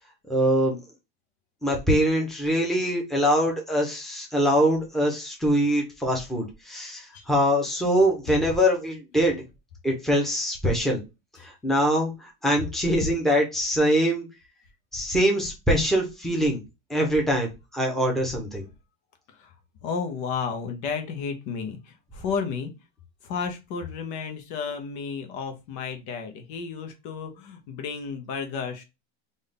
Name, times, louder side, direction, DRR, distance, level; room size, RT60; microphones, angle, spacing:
voice 1, 0.3-0.8 1.6-9.4 9.8-11.0 11.4-14.3 14.9-16.6 16.9-18.6, equal, ahead, 0 dB, 1.1 m, -23 dB
voice 2, 19.8-22.7 23.2-28.8, left 5 dB, 55° left, 5 dB, 1.1 m, -32 dB
3.7 x 2.7 x 3.5 m, 0.24 s
supercardioid pair, 130°, 36 cm